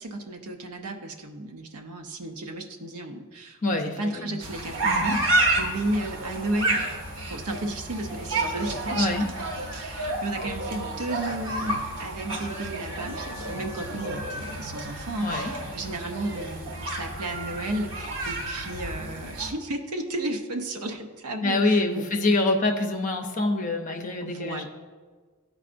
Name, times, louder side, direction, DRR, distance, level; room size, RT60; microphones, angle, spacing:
voice 1, 0.0-6.9 7.3-9.1 9.7-22.1 24.2-24.7, right 2 dB, 85° right, 4 dB, 0.7 m, -33 dB
voice 2, 3.6-4.4 4.8-5.2 8.9-9.3 15.2-15.5 21.4-24.7, left 2 dB, 35° left, 4 dB, 0.5 m, -25 dB
sound 1, 4.4-19.5, right 2 dB, 60° right, 0.9 m, -30 dB
13.0 x 4.8 x 2.5 m, 1.5 s
head